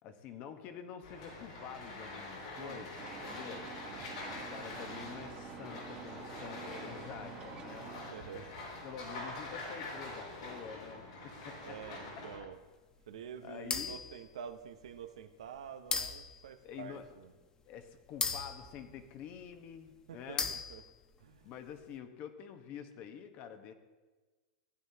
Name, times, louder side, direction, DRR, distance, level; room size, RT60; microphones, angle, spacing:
voice 1, 0.0-3.7 4.2-8.0 8.3-8.5 8.8-12.0 13.1-14.0 16.6-17.1 17.7-20.6 21.4-23.7, left 8 dB, 45° left, 8 dB, 1.1 m, -48 dB
sound 1, 1.0-12.4, left 2 dB, 85° left, 3.9 m, -45 dB
voice 2, 2.6-2.9 8.1-8.5 11.6-12.6 13.1-17.4 20.1-20.8 21.2-21.5, right 8 dB, 85° right, 9 dB, 0.8 m, -48 dB
sound 2, 3.0-8.1, right 7 dB, 35° right, 1.5 m, -48 dB
sound 3, 13.7-14.2 14.9-15.0 15.9-16.4 18.2-19.4 20.4-21.0, left 5 dB, 25° left, 0.9 m, -36 dB
15.5 x 9.2 x 2.8 m, 1.3 s
hypercardioid pair, 115°, 3 cm